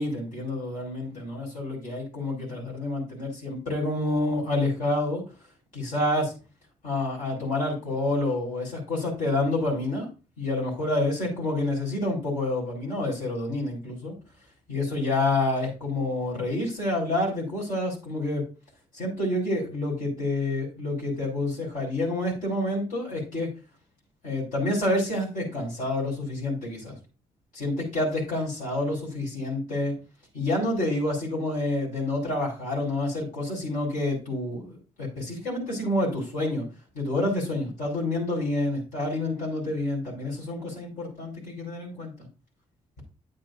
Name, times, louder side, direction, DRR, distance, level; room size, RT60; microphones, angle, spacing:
voice 1, 0.0-5.2 5.7-6.3 6.8-10.1 10.4-14.1 14.7-18.4 18.9-23.5 24.2-27.0 27.5-29.9 30.3-36.6 36.9-42.3, left 2 dB, 75° left, -4 dB, 4.6 m, -28 dB
9.3 x 7.8 x 2.6 m, 0.32 s
cardioid pair, 70°, 14 cm